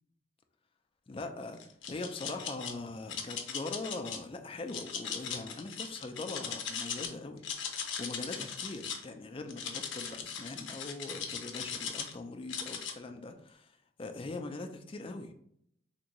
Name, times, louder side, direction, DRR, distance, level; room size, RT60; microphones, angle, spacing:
voice 1, 1.1-1.6 1.9-15.3, left 2 dB, 30° left, 5 dB, 0.4 m, -42 dB
sound 1, 1.6-2.7 3.1-4.2 4.7-7.1 7.4-9.0 9.5-12.1 12.5-12.9, left 7 dB, 80° left, 0.5 m, -38 dB
3.6 x 2.6 x 3.0 m, 0.70 s
head